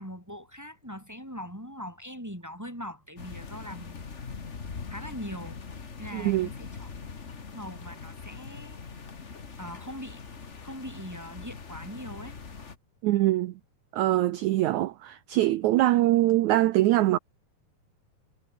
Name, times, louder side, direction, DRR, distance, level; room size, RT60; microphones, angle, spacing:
voice 1, 0.0-4.0 4.9-5.6 6.0-6.9 7.5-8.8 9.6-10.2 10.6-12.4, equal, 5° right, 4.5 m, -41 dB
sound 1, 3.2-12.8, left 5 dB, 75° left, 0.6 m, -42 dB
voice 2, 6.1-6.5 13.0-13.5 13.9-17.2, right 15 dB, 80° right, 1.7 m, -23 dB
omnidirectional pair, 4.3 m